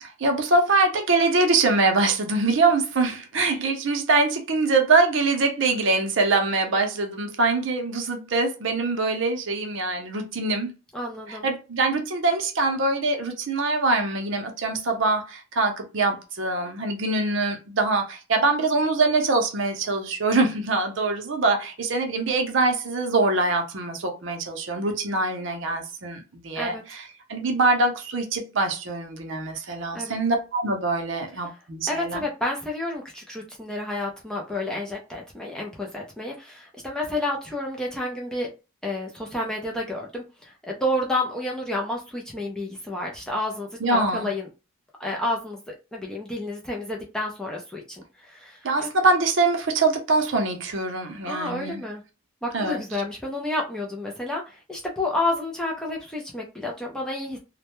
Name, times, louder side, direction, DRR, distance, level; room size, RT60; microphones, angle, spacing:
voice 1, 0.0-10.7 11.3-32.2 43.8-44.3 48.6-51.8 52.5-52.8, right 3 dB, 60° right, 0.6 m, -24 dB
voice 2, 10.9-11.5 26.6-26.8 29.9-30.2 31.9-38.5 38.8-44.5 45.0-48.9 51.3-52.0 52.4-57.4, left 1 dB, 5° left, 0.4 m, -30 dB
2.1 x 2.1 x 2.9 m
head